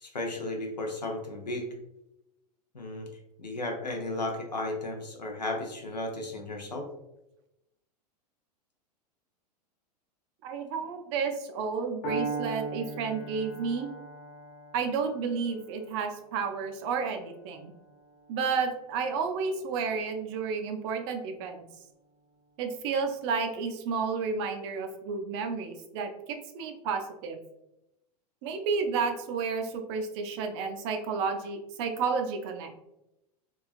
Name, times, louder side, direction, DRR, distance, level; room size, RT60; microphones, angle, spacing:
voice 1, 0.0-1.7 2.7-3.1 3.4-6.9, left 2 dB, 85° left, 2 dB, 0.6 m, -34 dB
voice 2, 10.4-13.9 14.7-17.7 18.3-21.7 22.6-27.4 28.4-32.7, right 5 dB, 45° right, 5 dB, 0.4 m, -31 dB
Piano, 12.0-20.0, right 3 dB, 45° left, 0.8 m, -40 dB
3.1 x 2.3 x 2.4 m, 0.88 s
figure-of-eight pair, 90°, 21 cm